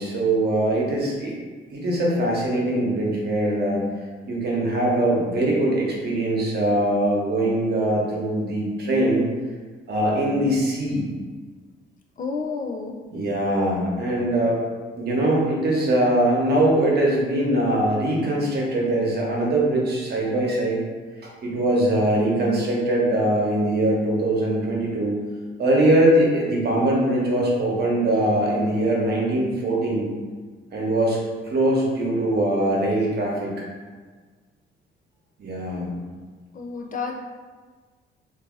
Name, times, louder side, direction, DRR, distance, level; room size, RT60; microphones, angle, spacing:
voice 1, 0.0-1.3 1.7-3.8 4.3-9.2 9.9-11.0 13.1-14.6 15.0-20.8 21.2-25.2 25.6-30.1 30.7-31.2 31.4-33.5 35.4-35.9, right 1 dB, 55° right, -3 dB, 1.0 m, -22 dB
voice 2, 12.2-13.0 36.5-37.2, left 4 dB, 40° left, 1 dB, 0.4 m, -30 dB
2.6 x 2.6 x 3.8 m, 1.5 s
cardioid pair, 90°, 20 cm